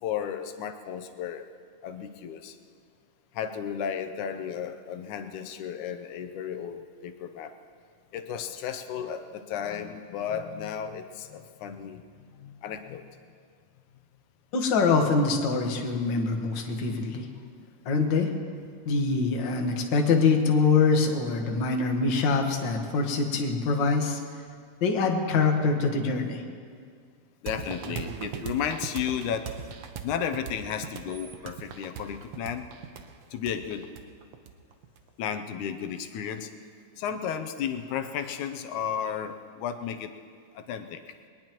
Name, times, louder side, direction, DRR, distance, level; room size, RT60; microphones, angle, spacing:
voice 1, 0.0-1.4 1.8-2.6 3.3-7.5 8.1-12.0 12.3-13.0 27.4-29.5 30.0-32.7 33.3-33.9 35.2-36.5 37.0-40.1 40.5-41.0, left 8 dB, 85° left, 7 dB, 2.2 m, -33 dB
voice 2, 14.5-17.3 17.8-18.3 18.8-24.2 24.8-26.4, left 4 dB, 50° left, 2 dB, 1.6 m, -24 dB
sound 1, 27.5-35.0, right 7 dB, 70° right, 1.5 m, -39 dB
22.0 x 19.5 x 3.0 m, 2.1 s
omnidirectional pair, 3.4 m